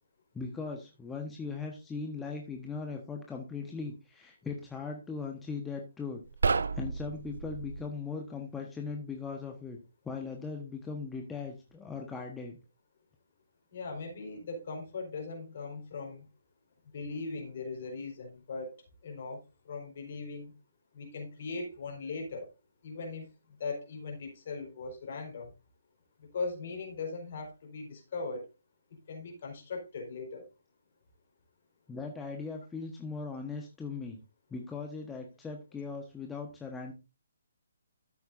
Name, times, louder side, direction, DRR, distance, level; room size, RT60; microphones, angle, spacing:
voice 1, 0.3-6.2 6.5-9.8 10.0-12.6 31.9-34.2 34.5-36.9, left 4 dB, 10° left, 2 dB, 1.2 m, -39 dB
sound 1, 6.2-7.9, right 4 dB, 70° right, 0.4 m, -31 dB
voice 2, 13.7-16.3 16.9-18.8 19.0-19.4 19.6-20.5 20.9-22.5 22.8-23.3 23.6-25.5 26.2-28.4 29.1-30.5, left 3 dB, 50° left, 2 dB, 4.4 m, -39 dB
12.5 x 8.3 x 2.6 m, 0.28 s
figure-of-eight pair, 140°, 0 cm